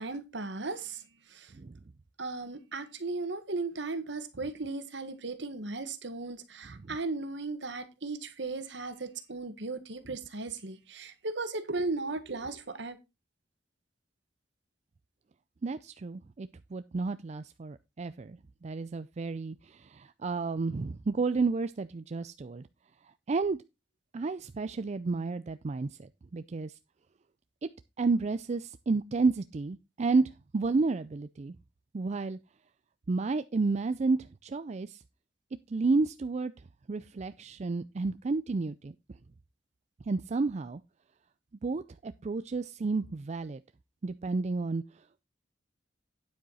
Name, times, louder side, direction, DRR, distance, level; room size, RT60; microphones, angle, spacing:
voice 1, 0.0-1.5 2.2-13.0, right 3 dB, 70° right, 1.5 m, -36 dB
voice 2, 15.6-22.7 23.3-23.6 24.1-26.7 27.6-27.7 28.0-31.6 31.9-32.4 33.1-35.0 35.7-36.5 36.9-38.9 40.1-40.8 41.6-43.6 44.0-44.8, right 3 dB, 35° right, 0.4 m, -31 dB
9.4 x 7.7 x 4.1 m
head